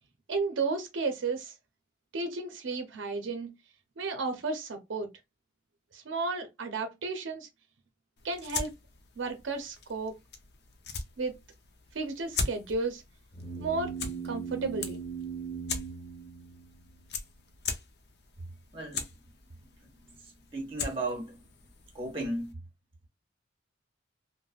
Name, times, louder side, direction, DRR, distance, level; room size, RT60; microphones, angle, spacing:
voice 1, 0.3-1.5 2.1-3.5 4.0-5.1 5.9-7.5 8.2-8.7 9.2-10.1 11.2-11.3 11.9-13.0 13.6-14.0 14.2-15.0, right 3 dB, 85° right, 0.5 m, -33 dB
sound 1, 8.2-22.5, left 4 dB, 60° left, 0.5 m, -41 dB
sound 2, 13.3-17.0, right 6 dB, 35° left, 1.3 m, -39 dB
voice 2, 18.7-19.0 20.2-21.4 21.9-22.6, right 2 dB, 30° right, 1.0 m, -35 dB
3.3 x 2.1 x 2.3 m
head